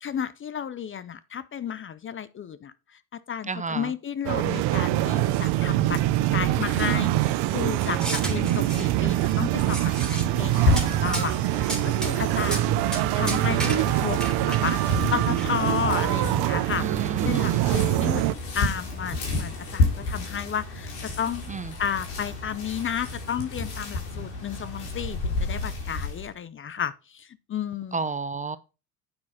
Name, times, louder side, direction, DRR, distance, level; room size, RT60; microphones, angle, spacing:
voice 1, 0.0-2.7 3.3-6.0 6.3-9.8 10.1-12.8 13.1-21.4 21.8-28.0, left 8 dB, 30° left, 0.6 m, -32 dB
voice 2, 3.5-3.9 16.8-17.9 21.5-21.6 27.9-28.6, right 4 dB, 20° right, 0.5 m, -32 dB
sound 1, 4.3-18.3, right 15 dB, 65° right, 0.8 m, -24 dB
sound 2, 7.8-9.3 9.6-10.2 10.8-10.9 11.1-11.3 11.7-12.1 12.4-12.6 12.9-13.0 13.3-14.7 15.1-15.5, right 1 dB, ahead, 3.0 m, -33 dB
sound 3, 9.7-26.3, left 2 dB, 80° left, 3.6 m, -31 dB
8.7 x 5.5 x 4.8 m
supercardioid pair, 80°, 43 cm